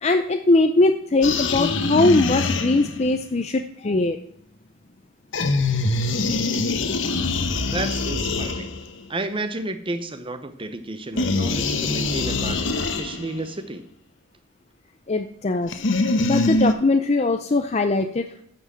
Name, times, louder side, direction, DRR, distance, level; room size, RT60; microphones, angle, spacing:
voice 1, 0.0-4.2 15.1-15.7 16.2-18.4, left 2 dB, 35° left, 6 dB, 0.5 m, -20 dB
sound 1, 1.2-3.1 5.3-9.0 11.2-13.4 15.7-16.7, left 3 dB, 65° left, 1.0 m, -24 dB
voice 2, 7.7-8.8 9.1-13.8, right 2 dB, 25° right, 10 dB, 0.8 m, -31 dB
9.1 x 6.0 x 7.6 m, 0.67 s
head